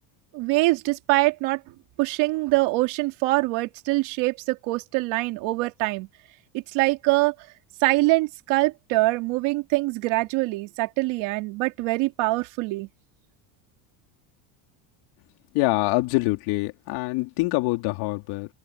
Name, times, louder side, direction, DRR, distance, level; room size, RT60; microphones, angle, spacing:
voice 1, 0.3-1.6 2.0-6.1 6.5-7.3 7.8-12.9, right 21 dB, 65° right, 2.5 m, -24 dB
voice 2, 15.5-18.5, left 23 dB, 75° left, 3.8 m, -25 dB
open air
cardioid pair, 160°, 49 cm